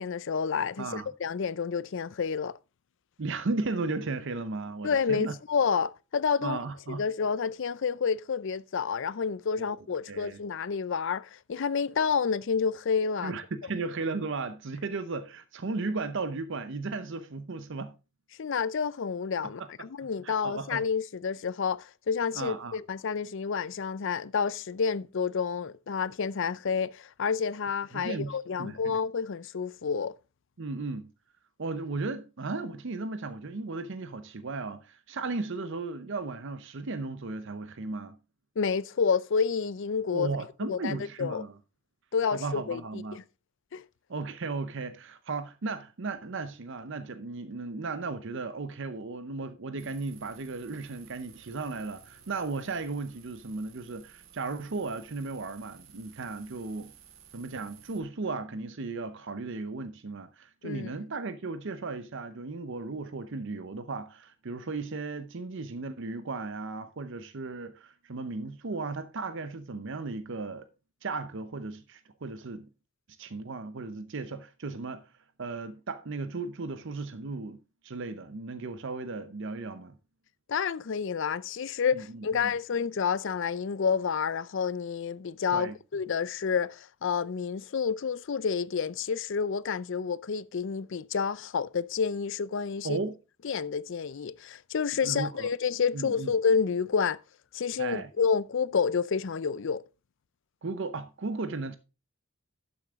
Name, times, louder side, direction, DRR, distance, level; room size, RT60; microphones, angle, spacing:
voice 1, 0.0-2.6 4.8-6.6 6.9-13.3 18.4-30.1 38.6-40.3 40.7-41.4 42.1-43.2 43.7-43.8 60.6-60.9 80.5-93.0 93.4-97.2 97.5-99.8, left 6 dB, 65° left, 0.5 m, -29 dB
voice 2, 0.8-1.1 3.2-5.4 6.4-7.0 9.6-9.7 10.1-10.4 13.2-17.9 19.6-19.7 20.2-20.8 22.3-22.8 27.9-29.0 30.6-31.1 31.6-38.2 40.1-41.6 42.3-43.2 44.1-56.9 57.3-70.7 71.0-72.7 73.2-75.0 75.4-77.6 77.8-80.0 81.9-82.5 85.5-85.8 92.8-93.1 95.0-95.5 95.9-96.3 97.8-98.1 100.6-101.8, right 3 dB, 65° right, 0.7 m, -35 dB
sound 1, 49.8-58.0, right 7 dB, 80° right, 2.2 m, -55 dB
12.0 x 6.9 x 3.6 m
head